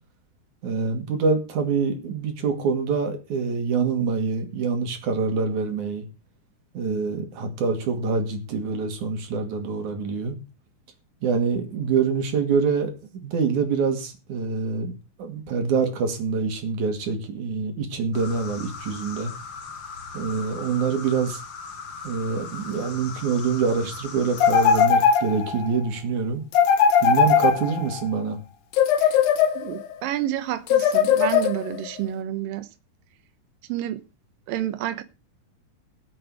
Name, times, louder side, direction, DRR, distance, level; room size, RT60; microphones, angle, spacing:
voice 1, 0.6-6.0 6.7-10.4 11.2-12.9 13.2-14.9 15.2-19.3 20.1-21.4 22.0-26.4 27.0-28.4, right 5 dB, 60° right, 3.6 m, -25 dB
sound 1, 18.1-24.9, left 5 dB, 45° left, 1.6 m, -38 dB
sound 2, 24.4-25.7 26.5-28.0 28.7-29.9 30.7-31.9, left 7 dB, 85° left, 3.1 m, -19 dB
voice 2, 29.6-32.7 33.7-34.0 34.5-35.0, right 12 dB, 85° right, 2.7 m, -29 dB
18.5 x 7.7 x 4.8 m
omnidirectional pair, 3.9 m